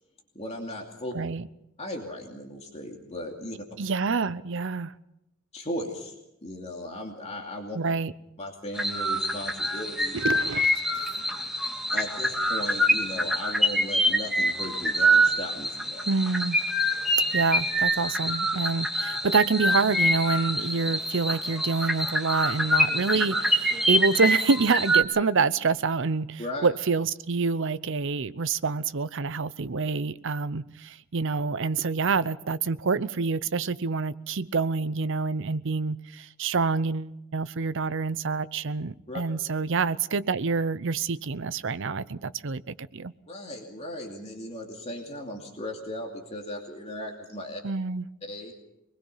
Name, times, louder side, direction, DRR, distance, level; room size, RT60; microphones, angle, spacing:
voice 1, 0.3-1.1 1.8-3.6 5.5-6.1 6.4-7.8 8.4-10.1 11.9-16.1 26.4-26.7 39.1-39.2 43.3-47.6 48.2-48.5, left 1 dB, 30° left, 2.7 m, -37 dB
voice 2, 1.1-1.4 3.8-4.9 7.7-8.1 10.1-10.7 16.1-16.6 17.3-43.1 47.6-48.1, right 4 dB, 60° right, 0.7 m, -27 dB
sound 1, 8.8-25.0, equal, ahead, 2.3 m, -25 dB
25.0 x 20.5 x 5.6 m
head